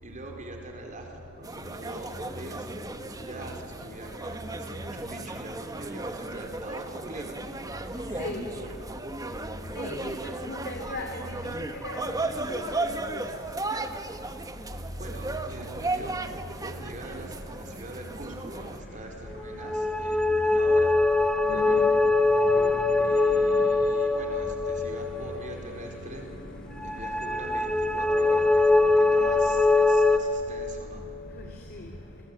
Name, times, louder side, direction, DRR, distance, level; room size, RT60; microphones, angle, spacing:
voice 1, 0.0-7.4 7.8-8.8 15.0-20.9 21.5-21.9 22.9-26.3 26.8-31.1, right 2 dB, 35° right, 2 dB, 4.5 m, -43 dB
sound 1, 1.4-18.8, right 2 dB, 15° right, 1.1 m, -35 dB
voice 2, 2.2-2.5 8.2-8.5 9.7-13.2 21.4-21.9 22.3-23.7 24.9-27.0 27.4-28.0 31.3-31.9, left 1 dB, 50° left, 2 dB, 2.8 m, -39 dB
sound 2, 19.4-26.0 26.8-30.2, left 3 dB, 5° left, 1.2 m, -23 dB
29.5 x 22.5 x 9.0 m, 2.9 s
head